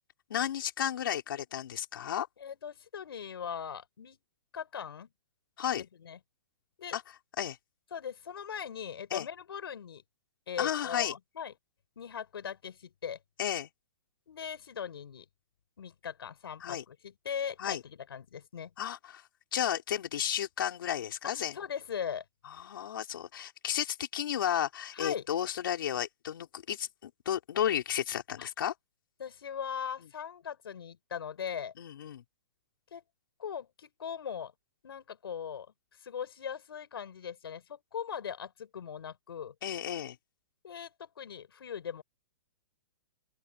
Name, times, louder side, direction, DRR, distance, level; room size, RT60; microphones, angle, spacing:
voice 1, 0.3-2.3 5.6-5.8 6.9-7.0 7.4-7.6 9.1-9.3 10.6-11.1 13.4-13.7 16.6-16.8 17.6-17.8 18.8-19.2 19.5-21.6 22.4-28.7 31.8-32.2 39.6-40.2, left 10 dB, 65° left, 4.3 m, -33 dB
voice 2, 2.4-4.2 4.5-5.1 6.0-6.2 6.8-7.0 7.9-10.0 10.5-11.5 12.0-13.2 14.3-15.3 15.8-18.7 21.2-22.2 24.9-25.2 28.4-28.5 29.2-31.7 32.9-33.0 33.4-34.5 34.8-35.7 36.0-39.5 40.6-42.0, left 8 dB, 85° left, 6.2 m, -40 dB
open air
hypercardioid pair, 165°, 12 cm